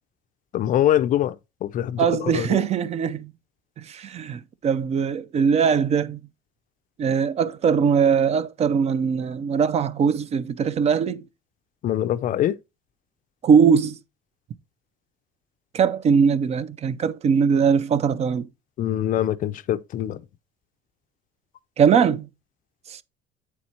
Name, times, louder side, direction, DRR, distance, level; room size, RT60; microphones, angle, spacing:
voice 1, 0.5-1.4 1.6-2.6 11.8-12.6 18.8-20.2, left 11 dB, 40° left, 0.4 m, -23 dB
voice 2, 2.0-3.3 3.8-6.2 7.0-11.2 13.4-14.0 15.7-18.5 21.8-22.3 22.9-23.0, right 6 dB, 30° right, 0.4 m, -21 dB
8.3 x 4.2 x 4.3 m
cardioid pair, 150°, 21 cm